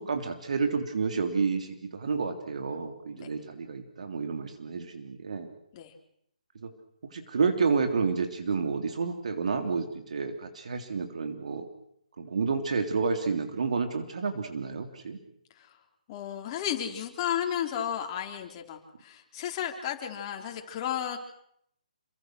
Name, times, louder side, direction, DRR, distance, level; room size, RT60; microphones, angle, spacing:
voice 1, 0.0-5.5 6.6-6.7 7.1-11.6 12.2-15.2, right 5 dB, 60° right, 6 dB, 3.4 m, -30 dB
voice 2, 16.1-21.2, left 10 dB, 30° left, 3 dB, 4.2 m, -33 dB
29.0 x 24.0 x 6.3 m, 0.72 s
figure-of-eight pair, 140°, 4 cm